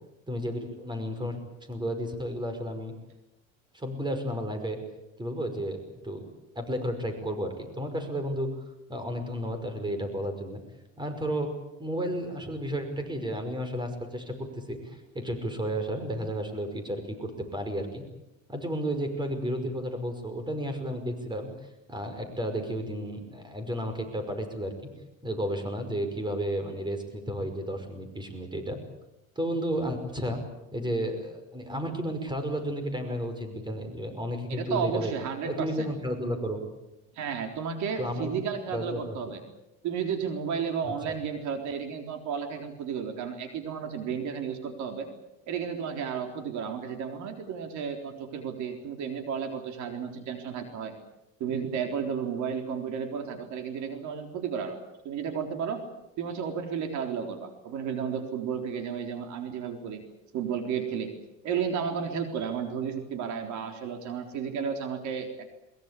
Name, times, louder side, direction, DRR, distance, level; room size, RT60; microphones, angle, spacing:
voice 1, 0.3-2.9 3.7-4.8 5.2-6.3 6.6-8.5 8.9-10.6 11.0-11.5 11.8-18.0 18.5-21.5 21.9-24.7 25.2-28.8 29.4-30.4 30.7-35.1 35.4-36.6 38.0-38.3 38.7-39.2, equal, 15° right, 7 dB, 5.6 m, -32 dB
voice 2, 34.5-35.9 37.1-39.4 39.8-45.1 45.5-51.0 51.4-54.8 55.0-55.8 56.2-60.0 60.3-61.1 61.4-65.5, right 7 dB, 70° right, 5 dB, 3.9 m, -33 dB
22.0 x 22.0 x 8.5 m, 0.93 s
cardioid pair, 110°, 30 cm